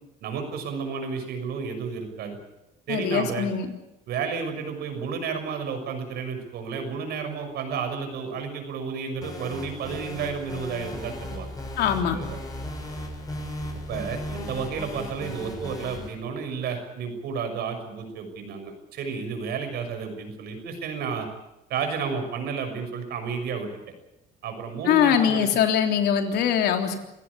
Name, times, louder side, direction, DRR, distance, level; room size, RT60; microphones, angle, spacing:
voice 1, 0.2-2.4 2.9-3.5 4.1-11.5 12.1-12.4 13.9-21.3 21.7-23.7 24.4-25.5, right 5 dB, 70° right, 6 dB, 6.5 m, -31 dB
voice 2, 2.9-3.7 11.8-12.2 24.9-27.0, left 8 dB, 75° left, 4 dB, 3.5 m, -22 dB
sound 1, 9.2-16.1, left 1 dB, 20° left, 7.6 m, -36 dB
27.0 x 16.5 x 8.5 m, 0.91 s
cardioid pair, 110°, 17 cm